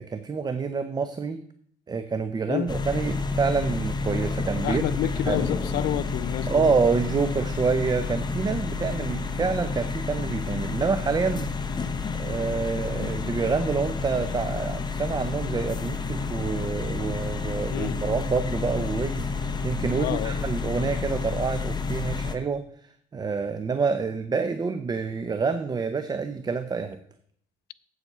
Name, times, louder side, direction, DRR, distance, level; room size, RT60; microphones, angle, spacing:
voice 1, 0.0-1.4 1.9-4.8 5.3-5.4 6.5-11.5 12.1-27.0, right 5 dB, 25° right, 0.6 m, -27 dB
sound 1, 2.7-22.4, left 4 dB, 25° left, 0.9 m, -30 dB
voice 2, 4.6-6.7 17.7-18.0 20.0-20.4, left 14 dB, 70° left, 0.5 m, -29 dB
8.0 x 7.3 x 5.5 m
cardioid pair, 110°, 17 cm